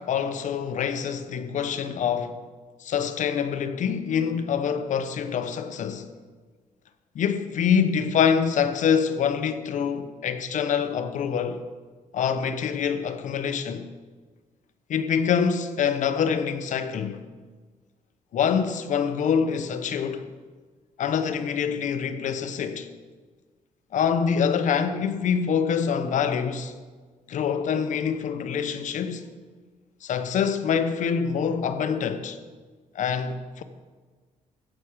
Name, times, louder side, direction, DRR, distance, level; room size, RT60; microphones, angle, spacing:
voice 1, 0.0-2.4 2.8-6.1 7.1-11.6 12.1-13.9 14.9-17.2 18.3-20.3 21.0-22.9 23.9-26.7 27.3-29.3 30.0-32.4 32.9-33.6, left 7 dB, 60° left, 0.9 m, -25 dB
15.5 x 5.9 x 5.0 m
cardioid pair, 115°, 15 cm